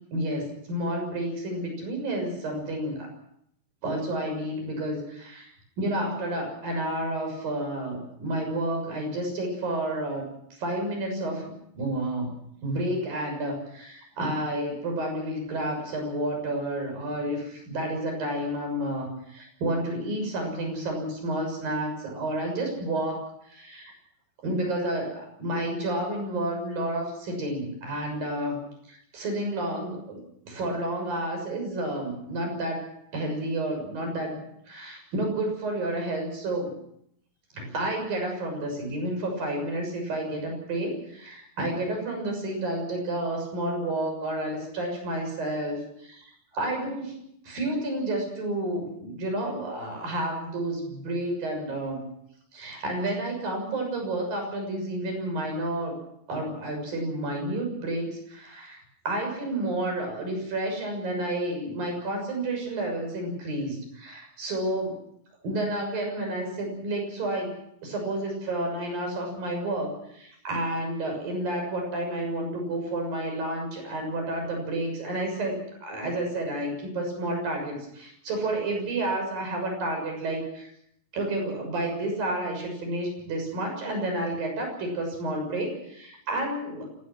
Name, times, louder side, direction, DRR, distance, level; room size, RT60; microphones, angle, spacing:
voice 1, 0.1-3.1 3.8-5.5 5.8-10.3 10.6-12.3 12.6-23.9 24.4-28.6 28.9-30.2 30.5-32.9 33.1-36.7 37.5-46.3 46.5-47.2 47.4-52.1 52.5-56.0 56.3-64.9 65.4-67.5 67.8-80.7 81.1-86.9, right 1 dB, 65° right, 3 dB, 8.4 m, -30 dB
27.5 x 18.0 x 6.1 m, 0.72 s
omnidirectional pair, 4.3 m